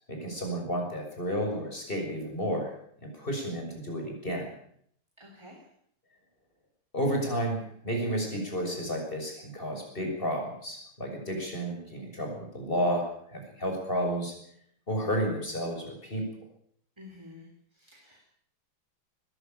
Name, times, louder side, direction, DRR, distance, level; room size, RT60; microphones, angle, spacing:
voice 1, 0.1-2.7 3.0-4.5 6.9-14.3 14.9-16.3, equal, 25° left, 2 dB, 6.7 m, -31 dB
voice 2, 5.2-5.6 17.0-18.3, left 2 dB, 10° right, 1 dB, 3.5 m, -50 dB
20.5 x 15.5 x 9.1 m, 0.66 s
omnidirectional pair, 2.4 m